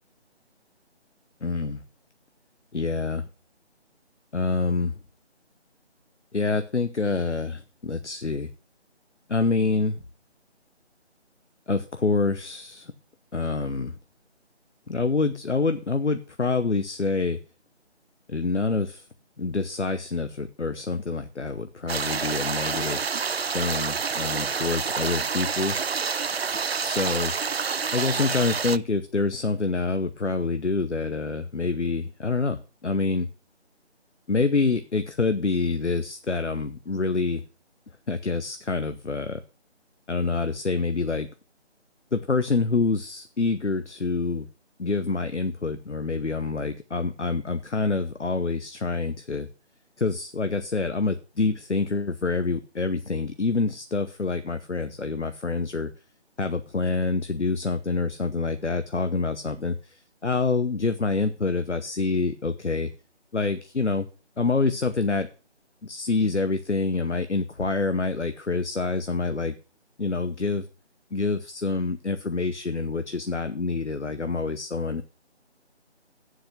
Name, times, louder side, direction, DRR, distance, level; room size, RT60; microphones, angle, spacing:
voice 1, 1.4-1.8 2.7-3.2 4.3-4.9 6.3-8.5 9.3-10.0 11.7-12.9 13.3-14.0 14.9-17.4 18.3-19.1 19.4-23.1 23.4-25.8 26.8-27.3 27.9-33.3 34.3-37.4 38.1-39.4 40.1-41.3 42.1-44.4 44.8-49.5 50.0-55.9 56.4-62.9 63.3-64.1 64.4-65.3 65.8-69.5 70.0-70.7 71.1-75.0, left 3 dB, 80° left, 10 dB, 1.0 m, -26 dB
sound 1, 21.9-28.8, right 6 dB, 60° right, 0.5 m, -28 dB
8.1 x 7.7 x 6.5 m, 0.36 s
figure-of-eight pair, 160°, 34 cm